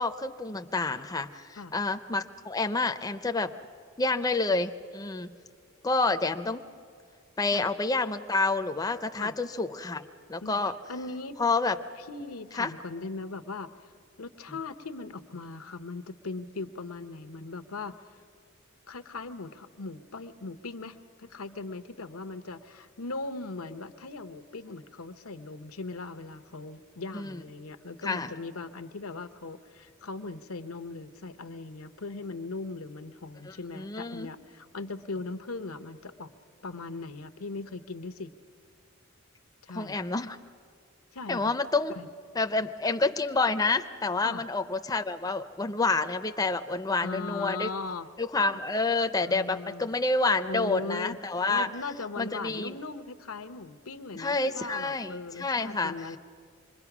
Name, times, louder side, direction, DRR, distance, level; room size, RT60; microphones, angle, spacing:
voice 1, 0.0-3.5 4.0-5.3 5.8-6.6 7.4-10.7 11.4-11.8 12.5-12.7 27.1-27.4 28.0-28.3 33.5-34.3 39.7-40.4 41.3-41.9 42.3-47.7 48.2-51.7 52.2-52.7 54.1-55.9, left 3 dB, 15° left, 7 dB, 0.5 m, -28 dB
voice 2, 10.9-11.4 12.0-13.9 14.2-18.0 18.9-36.3 36.6-38.3 39.6-40.0 41.1-41.5 41.9-42.1 44.2-44.4 47.0-48.1 49.2-49.9 50.5-51.2 51.5-56.2, left 3 dB, 85° left, 10 dB, 0.9 m, -39 dB
26.0 x 21.5 x 6.0 m, 2.2 s
head